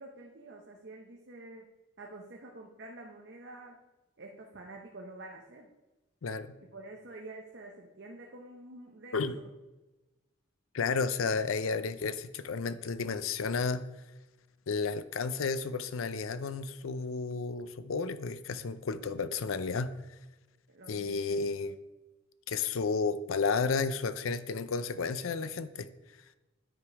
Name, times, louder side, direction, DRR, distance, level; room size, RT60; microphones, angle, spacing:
voice 1, 0.0-1.7 2.0-3.8 4.2-5.7 6.6-9.4 20.7-21.7, right 2 dB, 55° right, 1 dB, 0.8 m, -48 dB
voice 2, 6.2-6.5 9.1-9.3 10.7-13.9 14.7-19.9 20.9-21.7 22.5-25.9, left 4 dB, 80° left, 13 dB, 0.5 m, -32 dB
9.8 x 5.2 x 4.7 m, 1.1 s
head